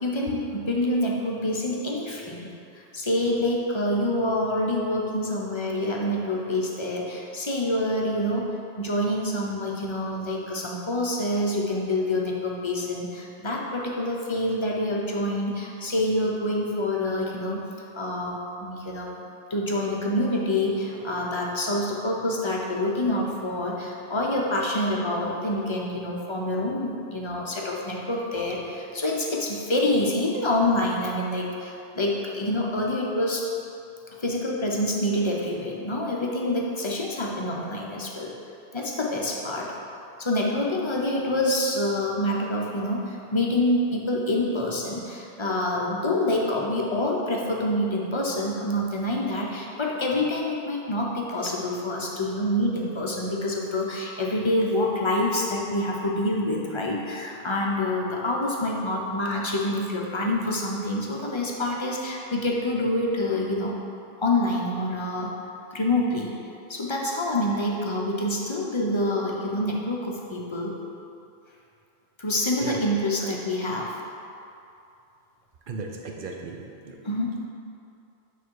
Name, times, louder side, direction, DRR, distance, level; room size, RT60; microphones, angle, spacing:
voice 1, 0.0-2.5 2.9-8.5 8.8-17.6 17.9-19.1 19.5-33.4 34.2-38.3 38.7-39.7 40.2-63.7 64.2-65.3 65.7-66.3 66.7-70.7 72.2-74.0 77.0-77.4, left 1 dB, 30° left, -2 dB, 0.7 m, -26 dB
voice 2, 75.7-77.0, right 4 dB, 55° right, 1 dB, 0.8 m, -36 dB
8.4 x 3.4 x 4.7 m, 2.7 s
omnidirectional pair, 1.1 m